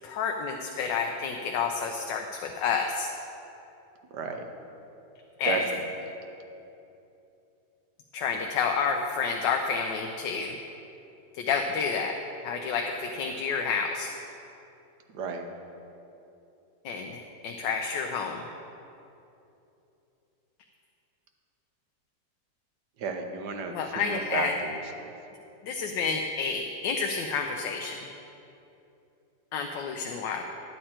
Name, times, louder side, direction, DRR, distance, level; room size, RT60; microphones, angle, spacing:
voice 1, 0.0-3.1 5.4-5.6 8.1-10.6 11.3-12.1 12.4-14.1 16.8-18.4 23.7-24.5 25.6-28.0 29.5-30.4, left 5 dB, 80° left, 3 dB, 1.3 m, -29 dB
voice 2, 4.1-4.4 5.4-5.8 15.1-15.4 23.0-24.8, right 4 dB, 70° right, 4 dB, 1.4 m, -32 dB
11.0 x 8.8 x 4.4 m, 2.8 s
omnidirectional pair, 2.0 m